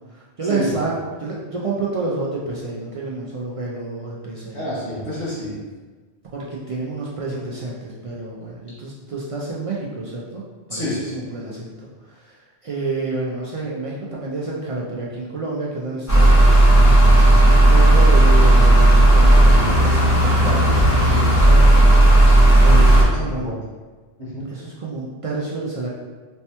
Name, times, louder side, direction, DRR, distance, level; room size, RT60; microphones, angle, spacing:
voice 1, 0.1-0.9 1.2-4.7 6.3-10.4 10.7-16.3 17.4-21.8 22.6-23.5 24.5-25.9, right 3 dB, 65° right, -4 dB, 0.3 m, -29 dB
voice 2, 4.5-5.5 10.7-11.1 16.8-17.2 22.7-23.6 24.2-24.5, left 1 dB, 45° left, -9 dB, 1.5 m, -29 dB
sound 1, 16.1-23.0, right 1 dB, 20° left, 0.5 m, -12 dB
4.3 x 2.2 x 2.8 m, 1.4 s
omnidirectional pair, 1.1 m